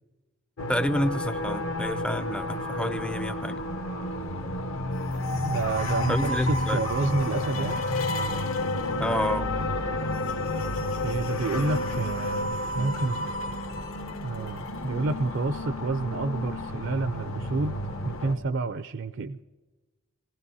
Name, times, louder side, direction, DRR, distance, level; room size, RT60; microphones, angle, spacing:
sound 1, 0.6-18.4, left 1 dB, 65° left, 1.2 m, -30 dB
voice 1, 0.7-3.6 6.1-6.8 9.0-9.5, equal, 5° left, 12 dB, 0.4 m, -29 dB
voice 2, 5.3-7.9 11.0-13.3 14.2-17.8 18.0-19.4, right 3 dB, 60° right, 11 dB, 0.4 m, -29 dB
24.0 x 18.5 x 2.7 m, 1.2 s
head